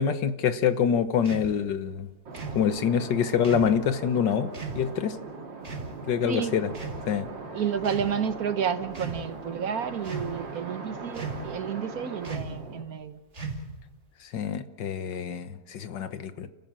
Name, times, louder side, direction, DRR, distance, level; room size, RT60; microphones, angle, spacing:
voice 1, 0.0-2.1 2.6-4.5 4.8-5.2 6.1-6.7 7.1-7.3 14.2-16.5, left 8 dB, 75° left, 11 dB, 1.7 m, -26 dB
sound 1, 1.2-1.5 2.3-2.6 3.4-3.8 4.5-4.8 5.6-5.9 6.7-7.3 7.8-8.1 8.8-9.2 10.0-10.5 11.1-11.5 12.2-12.6 13.3-13.8, right 3 dB, 40° right, 2.8 m, -36 dB
sound 2, 2.3-12.8, right 3 dB, 90° right, 2.8 m, -40 dB
voice 2, 6.2-6.6 7.5-13.2, right 7 dB, 60° right, 11 dB, 1.4 m, -31 dB
30.0 x 15.0 x 7.5 m, 1.2 s
omnidirectional pair, 1.9 m